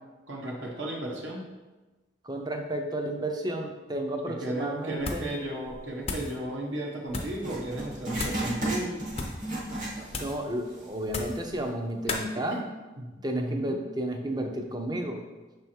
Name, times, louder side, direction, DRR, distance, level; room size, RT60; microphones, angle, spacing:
voice 1, 0.3-1.4 4.3-9.0 12.5-12.6 13.0-13.8, right 1 dB, 75° right, -1 dB, 1.2 m, -34 dB
voice 2, 2.2-5.2 10.2-12.6 13.2-15.2, right 1 dB, 20° right, 3 dB, 0.6 m, -32 dB
sound 1, 5.0-5.4 5.7-6.4 7.1-7.4 8.1-8.5 9.1-9.5 10.1-10.4 11.1-11.5 12.1-12.3, left 3 dB, 30° left, 0.6 m, -35 dB
Writing, 7.4-10.4 10.7-10.8 11.5-11.6, right 1 dB, 40° right, 1.3 m, -33 dB
6.2 x 3.4 x 4.4 m, 1.2 s
head